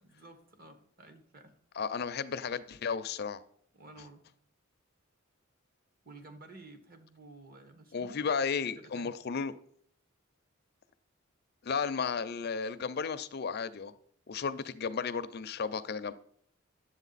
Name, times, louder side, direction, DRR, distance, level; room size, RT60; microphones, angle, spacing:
voice 1, 0.0-1.6 3.7-4.3 6.0-9.2 14.5-14.6, right 2 dB, 45° right, 7 dB, 1.2 m, -53 dB
voice 2, 1.7-3.4 7.9-9.5 11.6-13.9 14.3-16.1, left 5 dB, 50° left, 12 dB, 0.4 m, -34 dB
11.0 x 7.7 x 4.0 m, 0.64 s
head